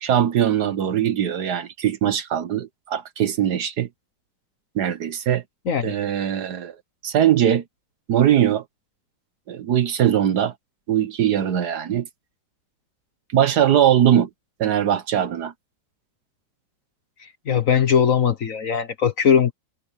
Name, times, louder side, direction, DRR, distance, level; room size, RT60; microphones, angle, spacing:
voice 1, 0.0-3.9 4.7-5.4 5.8-6.7 7.0-7.6 8.1-8.6 9.5-10.5 10.9-12.1 13.3-14.3 14.6-15.5, right 10 dB, 60° right, 1.4 m, -20 dB
voice 2, 17.5-19.5, left 7 dB, 50° left, 1.3 m, -19 dB
omnidirectional pair, 2.1 m